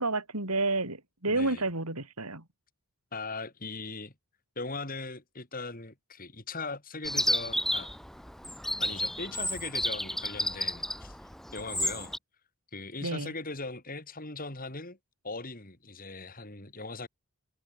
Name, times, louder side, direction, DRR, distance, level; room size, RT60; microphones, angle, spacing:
voice 1, 0.0-2.4 13.0-13.3, right 2 dB, 85° right, 7.0 m, -30 dB
voice 2, 1.3-1.6 3.1-4.1 4.6-7.9 8.8-11.2 11.5-12.1 12.7-15.0 15.2-17.1, left 3 dB, 40° left, 4.8 m, -39 dB
Chirp tweet, 7.0-12.2, left 1 dB, ahead, 2.2 m, -32 dB
head